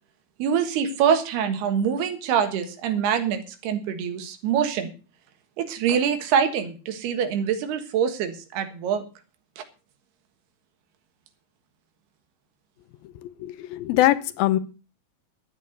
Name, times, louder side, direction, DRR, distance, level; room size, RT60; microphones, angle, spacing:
voice 1, 0.4-4.9 5.6-9.0 9.6-9.7, right 8 dB, 90° right, 7 dB, 3.6 m, -24 dB
voice 2, 13.2-14.6, left 15 dB, 75° left, 14 dB, 2.6 m, -22 dB
12.5 x 9.6 x 6.5 m, 0.34 s
omnidirectional pair, 4.5 m